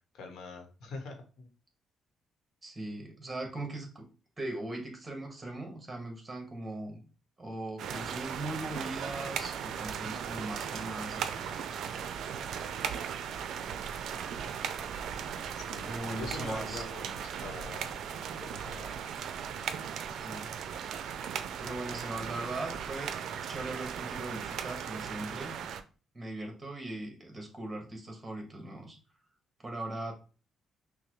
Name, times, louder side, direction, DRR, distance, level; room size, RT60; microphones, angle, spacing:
voice 1, 0.1-1.5 15.6-17.9 18.4-19.0, left 3 dB, 80° left, 4 dB, 1.1 m, -44 dB
voice 2, 2.6-4.0 4.4-7.0 7.4-11.8 15.9-16.8 20.0-20.5 21.6-23.1 23.4-25.6 26.1-29.0 29.6-30.1, right 2 dB, 20° right, 3 dB, 1.4 m, -39 dB
sound 1, 7.8-25.8, right 8 dB, 75° right, 0.4 m, -37 dB
5.6 x 2.2 x 3.1 m, 0.36 s
cardioid pair, 90°, 0 cm